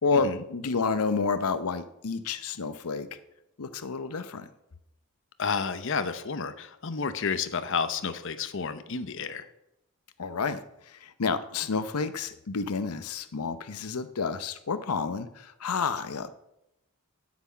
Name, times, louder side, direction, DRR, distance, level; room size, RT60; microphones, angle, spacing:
voice 1, 0.0-3.1 3.6-4.5 10.2-16.3, left 4 dB, 90° left, 12 dB, 0.7 m, -30 dB
voice 2, 5.4-9.5, left 5 dB, 60° left, 11 dB, 0.7 m, -31 dB
10.0 x 6.1 x 8.4 m, 0.86 s
head